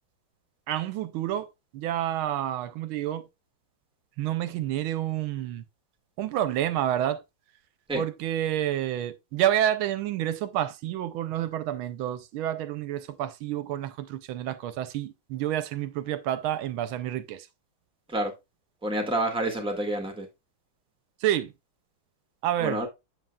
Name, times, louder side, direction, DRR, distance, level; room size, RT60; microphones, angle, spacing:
voice 1, 0.7-1.5 1.7-3.3 4.2-5.6 6.2-7.2 7.9-17.5 21.2-21.5 22.4-22.8, right 12 dB, 85° right, 1.4 m, -29 dB
voice 2, 18.8-20.3 22.6-22.9, right 1 dB, 5° right, 1.3 m, -28 dB
7.6 x 7.3 x 2.3 m
omnidirectional pair, 2.3 m